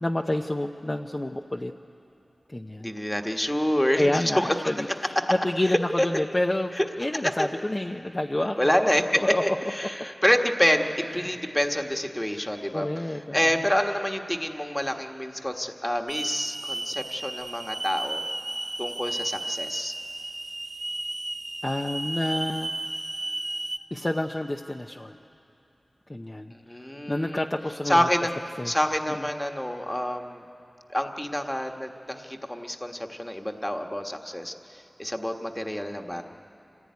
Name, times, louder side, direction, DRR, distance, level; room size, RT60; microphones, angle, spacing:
voice 1, 0.0-1.7 2.5-2.9 4.0-8.7 9.2-9.6 11.2-11.3 12.7-13.4 21.6-22.7 23.9-25.2 26.1-26.5 27.1-28.1 28.6-28.7 29.2-29.3, left 1 dB, 30° left, 2 dB, 0.8 m, -28 dB
voice 2, 2.8-4.5 5.7-6.1 6.7-6.8 7.2-7.5 8.6-18.2 18.8-19.9 26.5-27.4 27.8-28.3 28.6-30.4 30.9-36.2, equal, 15° left, 4 dB, 1.5 m, -27 dB
Hiss / Alarm, 16.1-23.8, right 2 dB, 45° right, 1.0 m, -34 dB
26.5 x 15.5 x 9.5 m, 2.8 s
wide cardioid pair, 55°, 0 cm